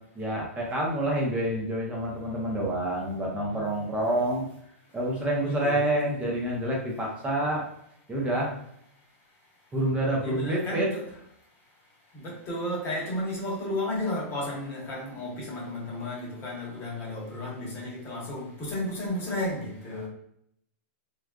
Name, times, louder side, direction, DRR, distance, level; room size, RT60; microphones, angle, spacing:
voice 1, 0.1-4.5 4.9-7.6 8.1-8.5 9.7-10.9 19.9-20.1, right 1 dB, 15° right, 0.8 m, -28 dB
voice 2, 5.5-6.2 10.2-11.1 12.1-20.1, left 1 dB, 30° left, 1.1 m, -33 dB
3.3 x 2.4 x 2.3 m
hypercardioid pair, 130°, 8 cm